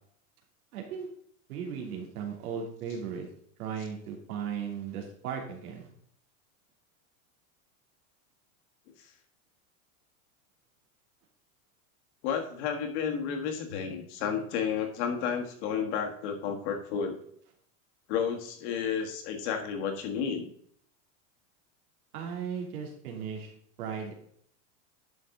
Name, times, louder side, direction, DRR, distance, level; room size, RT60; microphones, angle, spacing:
voice 1, 0.7-1.1 1.5-3.3 3.6-5.9 22.1-23.5 23.8-24.1, right 7 dB, 90° right, 1 dB, 3.0 m, -36 dB
voice 2, 12.2-17.2 18.1-20.5, left 7 dB, 50° left, 4 dB, 1.7 m, -31 dB
11.0 x 6.3 x 3.8 m, 0.64 s
supercardioid pair, 175°, 43 cm